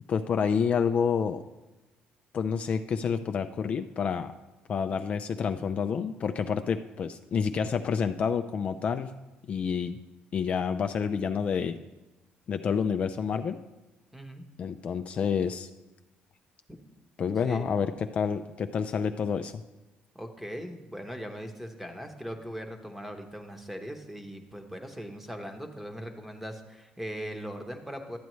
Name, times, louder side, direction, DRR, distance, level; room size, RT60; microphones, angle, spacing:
voice 1, 0.1-1.4 2.3-4.3 4.7-9.1 9.5-10.0 10.3-11.8 12.5-13.6 14.6-15.7 17.2-19.6, left 6 dB, 40° left, 8 dB, 0.3 m, -28 dB
voice 2, 14.1-14.4 16.7-16.8 17.4-17.7 20.1-28.2, equal, 5° right, 5 dB, 0.9 m, -40 dB
12.0 x 8.2 x 3.1 m, 1.1 s
cardioid pair, 130°, 3 cm